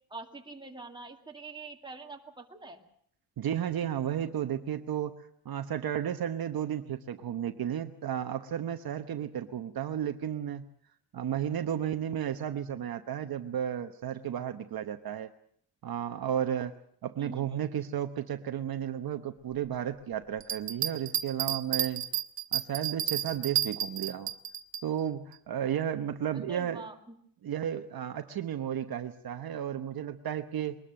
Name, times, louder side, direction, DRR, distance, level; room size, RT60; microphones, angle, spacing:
voice 1, 0.1-2.8 17.2-17.5 26.3-27.2, right 3 dB, 10° right, 2 dB, 2.1 m, -45 dB
voice 2, 3.4-5.1 5.4-10.6 11.1-15.3 15.8-16.7 17.0-22.0 22.5-24.3 24.8-26.8 27.4-30.8, right 9 dB, 55° right, 7 dB, 1.0 m, -33 dB
sound 1, 20.4-24.8, right 11 dB, 75° right, 1.2 m, -31 dB
22.0 x 20.0 x 7.6 m, 0.65 s
wide cardioid pair, 165°, 44 cm